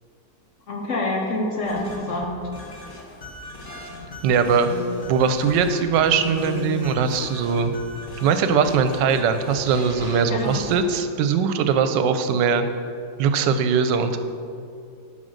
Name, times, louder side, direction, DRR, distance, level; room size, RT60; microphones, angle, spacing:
voice 1, 0.7-2.5 10.3-10.7, left 2 dB, 55° left, 0 dB, 1.0 m, -27 dB
sound 1, 1.6-10.8, left 3 dB, 35° left, 1.2 m, -36 dB
voice 2, 4.2-4.7 5.1-7.7 8.2-12.7 13.2-14.2, right 6 dB, 85° right, 9 dB, 1.2 m, -21 dB
9.9 x 3.8 x 6.4 m, 2.4 s
omnidirectional pair, 1.9 m